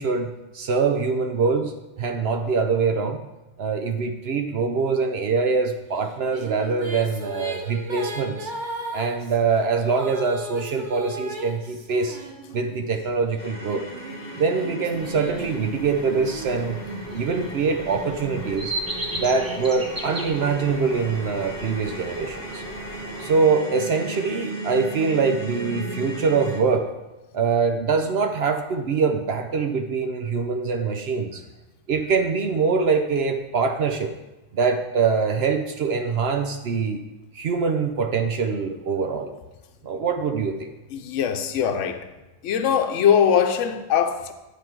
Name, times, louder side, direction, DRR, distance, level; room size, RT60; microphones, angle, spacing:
voice 1, 0.0-3.2 3.6-8.5 8.9-12.2 12.5-13.9 14.4-16.8 17.1-18.7 19.1-22.6 23.2-26.9 27.3-31.4 31.9-34.1 34.5-37.0 37.3-39.3 39.8-40.7, right 5 dB, 60° right, 0.8 m, -24 dB
Female singing, 6.0-12.9 13.6-17.4, right 1 dB, 45° right, 1.1 m, -37 dB
sound 1, 13.4-26.6, right 1 dB, 10° left, 1.6 m, -35 dB
sound 2, 14.9-23.3, right 1 dB, 20° right, 0.9 m, -37 dB
voice 2, 40.9-42.1 42.4-44.3, left 8 dB, 75° left, 1.0 m, -21 dB
9.7 x 5.0 x 4.5 m
omnidirectional pair, 1.3 m